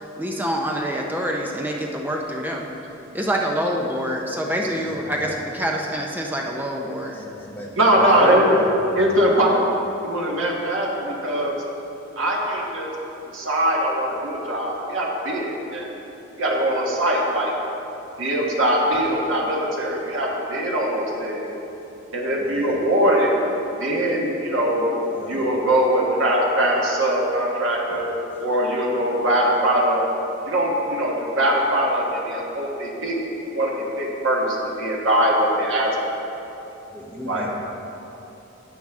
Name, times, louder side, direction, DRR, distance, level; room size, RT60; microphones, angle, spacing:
voice 1, 0.2-2.7 3.1-7.1, equal, 10° right, 0 dB, 0.6 m, -26 dB
voice 2, 4.8-5.3 7.1-9.0 22.4-22.8 25.1-25.4 27.9-28.0 36.9-37.5, equal, 10° left, -2 dB, 0.9 m, -36 dB
voice 3, 7.8-8.7 8.9-9.6 10.0-11.6 12.2-12.9 13.3-15.9 16.4-17.5 18.2-21.5 22.1-23.3 23.8-25.0 25.3-28.1 28.4-30.0 30.4-33.1 33.5-33.7 34.0-35.9 36.2-36.4 37.3-37.5, right 1 dB, 70° right, -3 dB, 1.6 m, -21 dB
10.0 x 8.4 x 3.6 m, 3.0 s
head